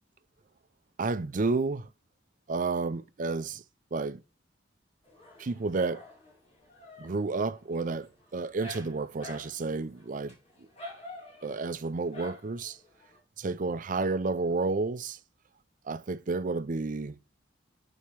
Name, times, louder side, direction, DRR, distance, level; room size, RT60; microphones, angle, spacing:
voice 1, 1.0-1.9 2.5-3.6 3.9-4.2 5.4-6.1 7.0-10.7 11.4-12.8 13.4-15.2 15.8-17.2, right 3 dB, 45° right, 0.5 m, -31 dB
Dog, 5.0-13.2, left 1 dB, 35° left, 2.3 m, -49 dB
5.4 x 4.3 x 4.5 m
head